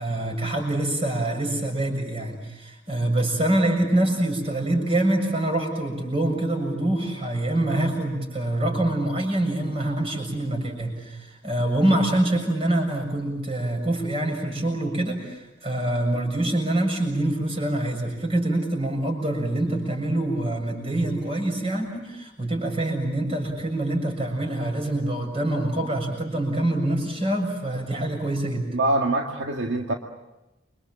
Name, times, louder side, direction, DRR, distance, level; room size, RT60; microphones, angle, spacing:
voice 1, 0.0-28.8, right 1 dB, 30° right, 2 dB, 7.0 m, -25 dB
voice 2, 28.7-29.9, right 2 dB, 70° right, 2 dB, 2.0 m, -24 dB
29.0 x 24.5 x 7.6 m, 0.95 s
head